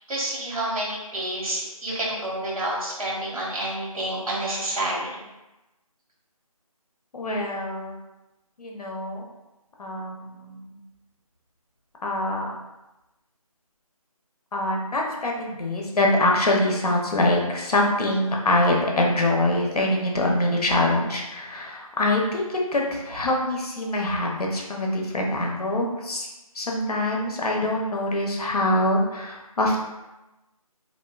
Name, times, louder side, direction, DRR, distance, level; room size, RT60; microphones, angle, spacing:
voice 1, 0.1-5.2, right 1 dB, 65° right, -6 dB, 1.2 m, -29 dB
voice 2, 7.1-8.0 8.6-9.2 9.8-10.8 12.0-12.5 14.5-26.3 26.5-29.8, left 1 dB, 90° left, -1 dB, 0.7 m, -24 dB
2.5 x 2.1 x 2.3 m, 1.0 s
figure-of-eight pair, 175°, 19 cm